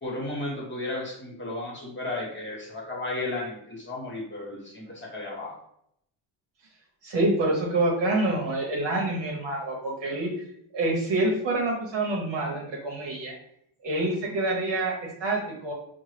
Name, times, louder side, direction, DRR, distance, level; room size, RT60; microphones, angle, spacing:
voice 1, 0.0-5.6, left 2 dB, 25° left, -3 dB, 1.1 m, -34 dB
voice 2, 7.0-10.5 10.7-13.3 13.8-15.7, right 2 dB, 65° right, -1 dB, 0.9 m, -27 dB
5.2 x 2.1 x 3.2 m, 0.73 s
wide cardioid pair, 165°, 48 cm